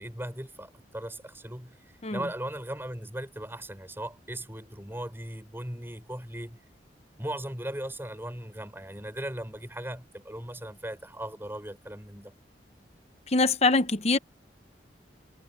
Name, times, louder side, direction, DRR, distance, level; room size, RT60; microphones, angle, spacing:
voice 1, 0.0-6.6 7.2-12.3, right 1 dB, 15° right, 7.2 m, -38 dB
voice 2, 13.3-14.2, left 3 dB, 40° left, 0.9 m, -23 dB
head